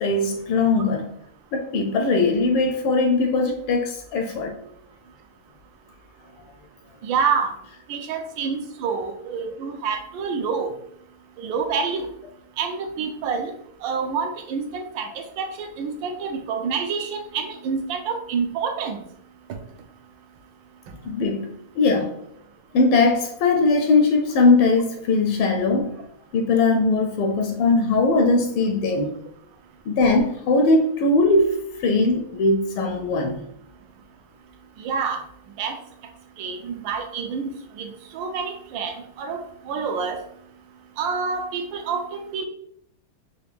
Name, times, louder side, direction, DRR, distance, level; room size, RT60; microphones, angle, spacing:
voice 1, 0.0-1.1 1.5-4.6 15.1-15.2 21.0-22.2 22.7-25.9 26.3-29.2 29.9-33.4, left 3 dB, 80° left, 1.4 m, -20 dB
voice 2, 7.0-7.5 7.9-10.7 11.4-12.1 12.6-13.5 13.8-15.1 15.4-19.0 34.8-35.2 35.6-35.8 36.4-37.5 37.8-37.9 38.1-39.4 39.7-40.2 41.0-42.4, right 5 dB, 75° right, 1.3 m, -27 dB
4.7 x 2.4 x 3.4 m
omnidirectional pair, 2.4 m